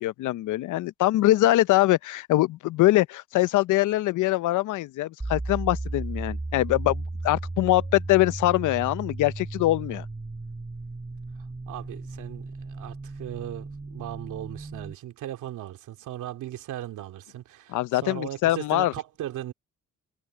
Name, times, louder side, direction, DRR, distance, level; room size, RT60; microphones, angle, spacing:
voice 1, 0.0-10.0 17.7-18.9, left 16 dB, 80° left, 0.7 m, -23 dB
sound 1, 5.2-14.9, right 2 dB, 15° right, 1.4 m, -35 dB
voice 2, 11.7-19.5, right 12 dB, 80° right, 2.5 m, -37 dB
cardioid pair, 90°, 30 cm